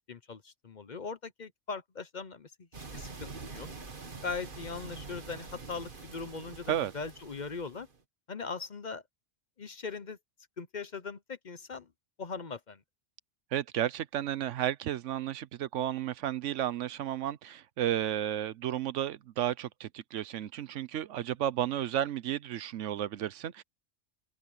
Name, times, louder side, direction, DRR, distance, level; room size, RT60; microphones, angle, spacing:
voice 1, 0.0-2.5 2.9-3.7 4.2-7.9 8.3-9.0 9.6-10.2 10.6-11.9 12.2-12.8, left 4 dB, 45° left, 0.9 m, -40 dB
sound 1, 2.7-8.0, right 4 dB, 45° right, 1.8 m, -45 dB
voice 2, 13.5-23.6, right 11 dB, 80° right, 1.0 m, -33 dB
open air
omnidirectional pair, 1.2 m